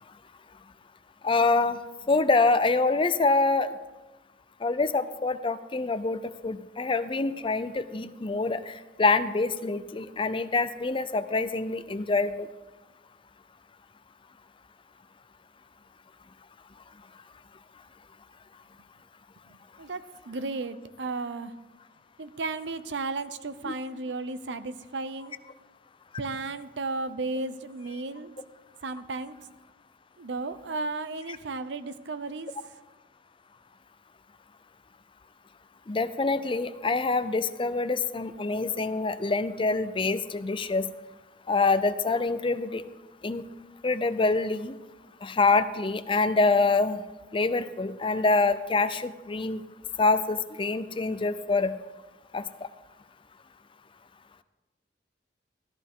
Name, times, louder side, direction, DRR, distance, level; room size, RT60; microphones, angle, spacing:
voice 1, 1.2-1.8 2.1-3.7 4.6-6.2 6.4-12.5 23.6-23.7 35.9-40.9 41.5-42.8 43.2-43.4 43.8-44.7 45.2-47.0 47.3-49.6 50.0-51.7 52.3-52.4, left 3 dB, 30° left, 13 dB, 0.5 m, -25 dB
voice 2, 19.8-21.5 22.2-25.4 26.2-28.3 28.8-29.4 30.2-32.5, right 3 dB, 90° right, 12 dB, 0.7 m, -34 dB
14.5 x 13.5 x 3.6 m, 1.1 s
head